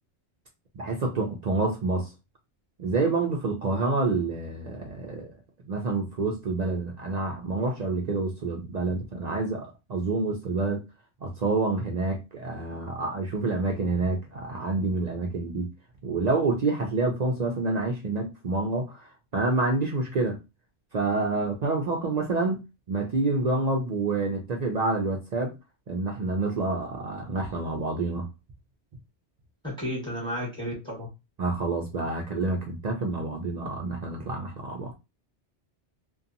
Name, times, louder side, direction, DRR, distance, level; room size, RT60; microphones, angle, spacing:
voice 1, 0.8-2.1 2.8-5.3 5.7-10.8 11.2-15.7 16.0-20.4 20.9-25.5 25.9-28.3 31.4-34.9, right 3 dB, 60° right, 0.4 m, -28 dB
voice 2, 29.6-31.1, equal, 5° left, 1.0 m, -32 dB
2.7 x 2.3 x 2.5 m
omnidirectional pair, 1.2 m